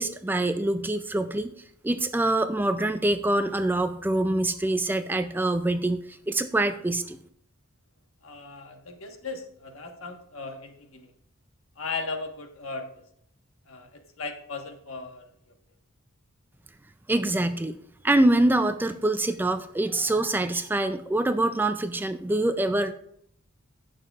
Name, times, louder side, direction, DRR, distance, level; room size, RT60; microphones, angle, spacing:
voice 1, 0.0-1.5 1.8-7.2 17.1-17.8 18.0-22.9, right 1 dB, 10° right, 10 dB, 0.3 m, -25 dB
voice 2, 8.2-11.1 11.8-13.0 13.7-15.5, left 4 dB, 70° left, 4 dB, 1.3 m, -37 dB
16.5 x 6.5 x 2.4 m, 0.68 s
head